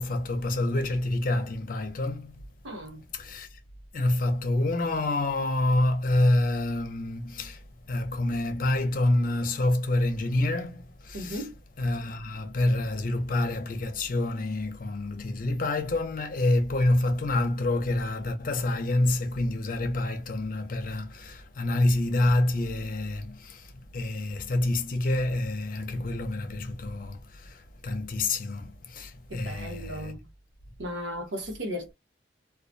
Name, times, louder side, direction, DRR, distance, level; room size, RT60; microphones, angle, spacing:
voice 1, 0.0-2.4 3.1-3.6 3.9-11.4 11.8-30.1, left 1 dB, 50° left, 0.6 m, -27 dB
voice 2, 2.6-3.1 11.1-11.6 29.3-30.3 30.8-31.9, equal, 85° right, 1.0 m, -36 dB
2.3 x 2.1 x 2.6 m
head